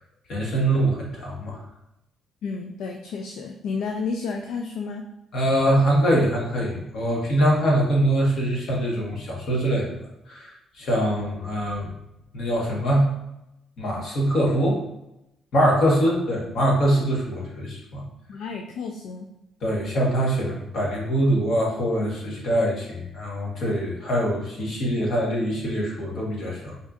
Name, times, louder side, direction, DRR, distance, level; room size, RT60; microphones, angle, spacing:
voice 1, 0.3-1.6 5.3-10.0 10.3-11.9 12.3-13.1 13.8-14.8 15.5-18.0 19.6-26.8, right 1 dB, 65° left, -3 dB, 1.2 m, -23 dB
voice 2, 2.4-5.1 18.3-19.3, left 4 dB, 80° left, 3 dB, 0.3 m, -31 dB
4.2 x 2.7 x 2.4 m, 0.88 s
cardioid pair, 85°, 0 cm